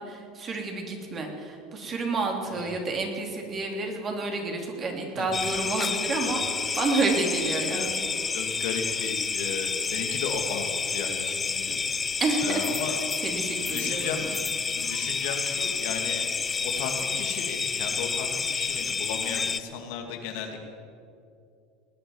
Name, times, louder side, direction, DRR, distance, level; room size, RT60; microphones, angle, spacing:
voice 1, 0.0-8.0 12.2-12.6 13.2-14.3, right 3 dB, 35° right, 2 dB, 3.1 m, -29 dB
sound 1, 5.3-19.6, left 5 dB, 25° left, 0.6 m, -29 dB
voice 2, 8.3-12.1 12.4-13.0 13.6-14.3 14.7-16.2 16.6-20.6, left 6 dB, 70° left, 3 dB, 2.3 m, -35 dB
19.5 x 9.0 x 7.2 m, 2.5 s
supercardioid pair, 100°, 0 cm